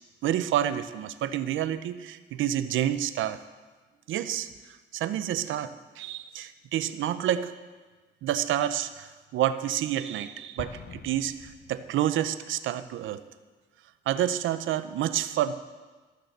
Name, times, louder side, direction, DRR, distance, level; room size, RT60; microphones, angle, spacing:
voice 1, 0.2-3.4 4.1-4.5 4.9-7.5 8.2-13.2 14.1-15.5, right 11 dB, 80° right, 12 dB, 0.6 m, -29 dB
Explosion, 10.6-12.3, left 7 dB, 55° left, 0.8 m, -45 dB
13.0 x 6.6 x 6.6 m, 1.3 s
cardioid pair, 90°, 20 cm